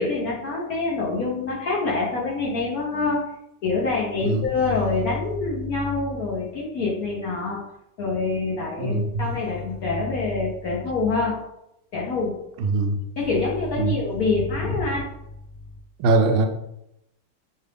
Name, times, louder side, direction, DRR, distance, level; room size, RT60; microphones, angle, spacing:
voice 1, 0.0-3.2 3.6-7.6 8.0-11.4 11.9-12.4 13.2-15.1, left 3 dB, 60° left, -3 dB, 0.9 m, -25 dB
voice 2, 8.8-9.1 12.7-13.0 13.8-13.9 16.0-16.5, right 3 dB, 75° right, 5 dB, 1.3 m, -21 dB
5.6 x 2.4 x 3.4 m, 0.82 s
omnidirectional pair, 2.4 m